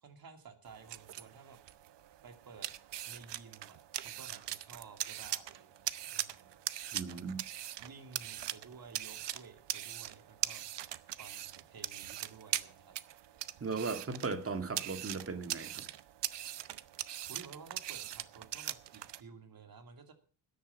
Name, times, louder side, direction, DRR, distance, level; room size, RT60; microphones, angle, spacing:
voice 1, 0.0-1.6 2.2-2.7 3.1-5.9 6.1-6.6 7.1-7.2 7.8-10.6 11.2-13.0 17.3-20.1, right 5 dB, 55° right, 2.8 m, -54 dB
sound 1, 0.6-19.2, right 12 dB, 80° right, 0.9 m, -41 dB
voice 2, 6.9-7.4 13.6-15.9, right 4 dB, 30° right, 2.0 m, -37 dB
13.5 x 10.0 x 7.1 m
cardioid pair, 105°, 42 cm